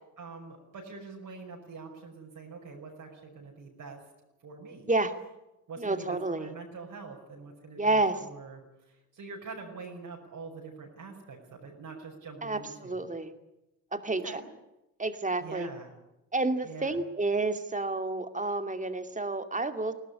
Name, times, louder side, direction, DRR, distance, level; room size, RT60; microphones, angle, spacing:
voice 1, 0.2-4.0 4.4-4.9 5.7-8.6 8.9-13.0 14.2-14.4 15.4-15.9 16.6-17.0, right 4 dB, 50° right, 0 dB, 5.8 m, -44 dB
voice 2, 5.8-6.5 7.8-8.2 12.4-13.3 13.9-14.4 15.0-15.7 16.3-19.9, right 2 dB, 15° right, 8 dB, 2.5 m, -29 dB
23.0 x 18.0 x 9.9 m, 0.93 s
figure-of-eight pair, 45°, 43 cm